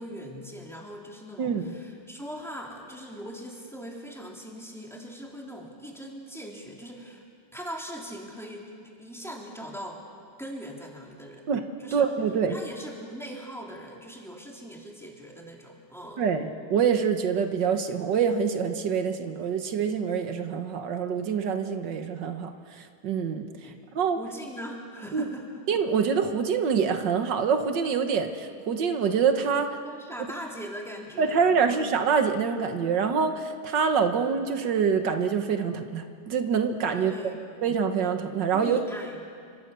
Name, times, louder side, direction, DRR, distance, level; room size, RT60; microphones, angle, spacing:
voice 1, 0.0-7.2 7.5-10.0 10.4-11.5 11.8-12.0 12.5-16.2 23.6-23.8 24.2-25.6 29.8-31.8 36.9-37.6 38.5-39.2, equal, ahead, -2 dB, 3.7 m, -41 dB
voice 2, 1.4-1.7 11.5-11.6 11.9-12.6 16.2-24.2 25.1-25.2 25.7-29.8 31.2-37.1 37.6-38.8, right 6 dB, 85° right, 7 dB, 1.9 m, -26 dB
29.5 x 25.5 x 6.9 m, 2.2 s
omnidirectional pair, 1.9 m